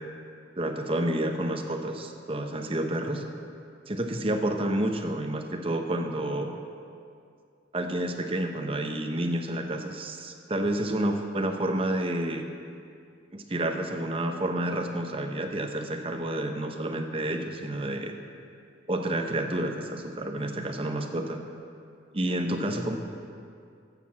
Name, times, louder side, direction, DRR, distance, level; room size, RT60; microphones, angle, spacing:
voice 1, 0.6-3.2 3.9-6.5 7.7-12.4 13.3-18.1 18.9-21.4 22.1-22.9, right 1 dB, 30° right, 4 dB, 0.8 m, -29 dB
9.8 x 6.7 x 7.3 m, 2.3 s
head